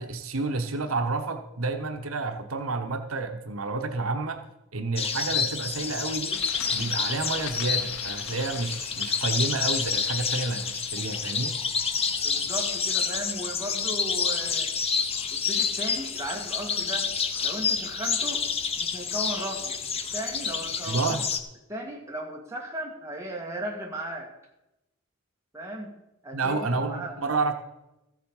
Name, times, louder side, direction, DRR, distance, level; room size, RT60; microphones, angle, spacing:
voice 1, 0.0-4.4 4.7-6.4 6.7-11.6 20.9-21.2 26.3-27.5, right 3 dB, 80° right, 6 dB, 1.0 m, -30 dB
sound 1, 5.0-21.4, left 6 dB, 30° left, 0.7 m, -29 dB
sound 2, 6.3-11.5, left 9 dB, 80° left, 0.6 m, -42 dB
voice 2, 12.2-14.7 15.3-17.1 17.4-18.4 18.8-19.8 20.1-21.2 21.7-24.3 25.5-26.0 26.2-27.2, right 1 dB, 15° right, -1 dB, 2.0 m, -36 dB
14.0 x 7.6 x 5.5 m, 0.91 s
head